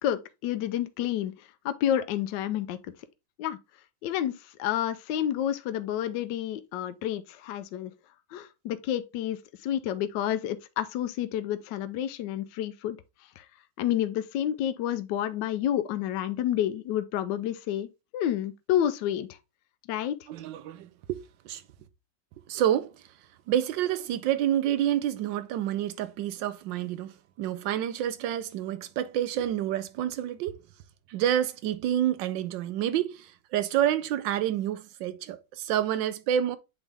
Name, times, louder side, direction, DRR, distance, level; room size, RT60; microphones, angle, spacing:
voice 1, 0.0-1.3 1.6-2.8 3.4-3.6 4.0-7.9 8.3-13.0 13.4-13.5 13.8-17.9 18.1-19.3 19.9-20.1, left 11 dB, 75° left, 1.2 m, -29 dB
voice 2, 20.3-21.2 21.4-21.6 22.5-22.9 23.5-27.1 27.4-30.5 31.1-36.6, right 11 dB, 80° right, 1.4 m, -28 dB
8.1 x 3.5 x 3.4 m
omnidirectional pair, 2.0 m